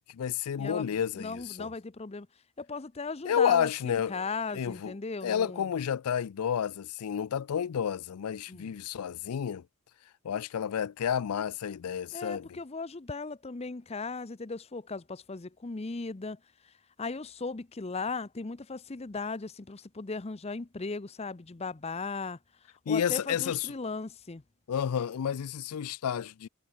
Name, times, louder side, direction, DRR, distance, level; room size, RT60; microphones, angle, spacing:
voice 1, 0.0-1.7 3.2-4.3 4.5-4.9 5.2-9.6 10.2-12.6 22.9-23.7 24.7-26.5, left 8 dB, 85° left, 0.4 m, -30 dB
voice 2, 0.6-2.3 2.6-5.7 8.5-8.7 12.1-16.4 16.6-16.7 17.0-22.4 22.9-24.4, left 4 dB, 30° left, 0.6 m, -37 dB
head